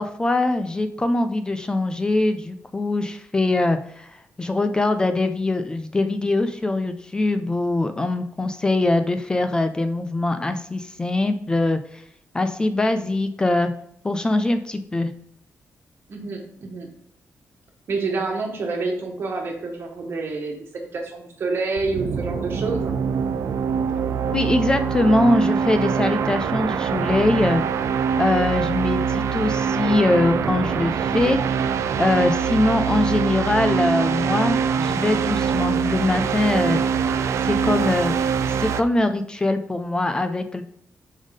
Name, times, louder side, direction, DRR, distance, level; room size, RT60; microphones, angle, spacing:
voice 1, 0.0-12.0 12.3-13.7 14.0-15.1 24.2-27.6 28.2-36.8 37.4-38.1 38.5-40.6, left 2 dB, 15° left, 8 dB, 0.3 m, -22 dB
voice 2, 16.1-16.9 17.9-22.9, right 3 dB, 55° right, 2 dB, 1.4 m, -28 dB
sound 1, 21.8-38.8, right 6 dB, 70° right, 0.4 m, -23 dB
5.4 x 3.5 x 5.0 m, 0.70 s
wide cardioid pair, 165°, 5 cm